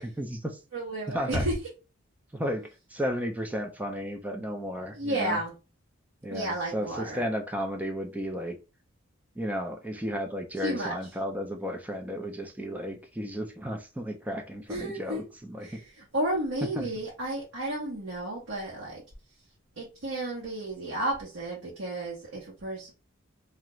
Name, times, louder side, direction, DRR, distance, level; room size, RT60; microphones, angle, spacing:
voice 1, 0.0-0.6 1.1-1.4 2.3-5.4 6.2-8.6 9.4-15.8 16.8-16.9, equal, 10° right, 0.4 m, -33 dB
voice 2, 0.7-1.6 4.9-5.5 6.3-7.3 10.6-11.0 14.7-15.2 15.6-19.0 19.8-22.9, right 1 dB, 85° right, 0.9 m, -32 dB
2.4 x 2.1 x 2.9 m
head